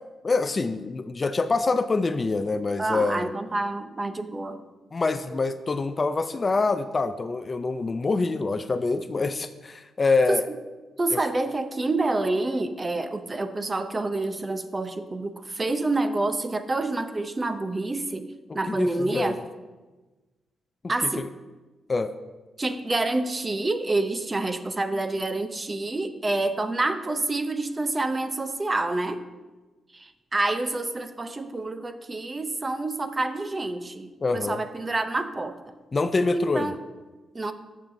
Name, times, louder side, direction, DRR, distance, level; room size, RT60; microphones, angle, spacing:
voice 1, 0.2-3.3 4.9-10.4 11.1-11.2 18.5-19.3 21.9-22.1 34.2-34.6 35.9-36.7, left 3 dB, 30° left, 10 dB, 0.4 m, -25 dB
voice 2, 2.8-4.6 10.0-10.6 11.0-19.4 20.9-21.3 22.6-29.2 29.9-35.7 36.3-36.8 37.3-37.5, right 2 dB, 20° right, 9 dB, 0.6 m, -28 dB
14.0 x 7.3 x 2.6 m, 1.2 s
cardioid pair, 130°, 0 cm